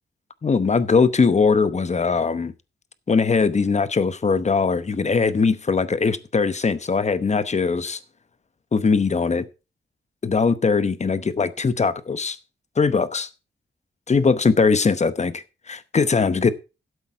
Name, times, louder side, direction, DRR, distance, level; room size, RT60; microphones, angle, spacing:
voice 1, 0.4-2.5 3.1-8.0 8.7-9.5 10.2-12.4 12.8-13.3 14.1-16.5, left 4 dB, 35° left, 0.9 m, -20 dB
12.0 x 8.1 x 4.6 m
wide cardioid pair, 105°, 19 cm